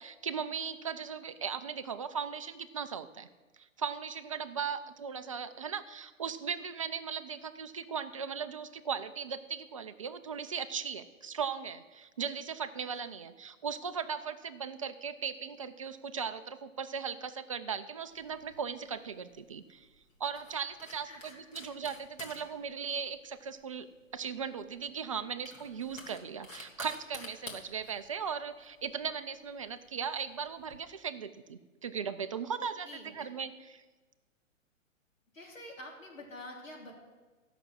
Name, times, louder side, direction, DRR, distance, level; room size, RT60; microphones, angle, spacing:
voice 1, 0.0-3.3 3.6-19.9 20.2-23.9 24.1-33.8, right 6 dB, 25° right, 10 dB, 0.4 m, -38 dB
sound 1, 18.1-30.8, left 2 dB, 20° left, 1.4 m, -52 dB
voice 2, 21.0-21.6 32.6-33.3 35.3-36.9, left 1 dB, 75° left, 0 dB, 3.5 m, -48 dB
14.0 x 6.0 x 7.5 m, 1.3 s
figure-of-eight pair, 120°, 40 cm